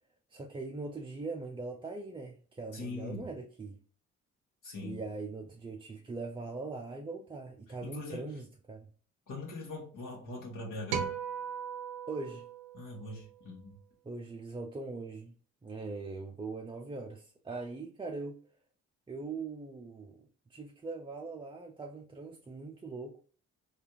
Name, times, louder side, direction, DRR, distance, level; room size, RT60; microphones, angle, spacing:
voice 1, 0.3-3.8 4.8-8.9 12.1-12.5 14.0-15.3 15.6-18.4 19.1-23.2, right 3 dB, 15° right, 0.4 m, -41 dB
voice 2, 2.7-3.3 4.6-5.0 7.8-8.3 9.3-11.1 12.7-13.8, left 2 dB, 60° left, 1.3 m, -42 dB
sound 1, 10.9-13.4, right 7 dB, 85° right, 0.6 m, -38 dB
3.4 x 2.5 x 2.8 m
hypercardioid pair, 50°, 35 cm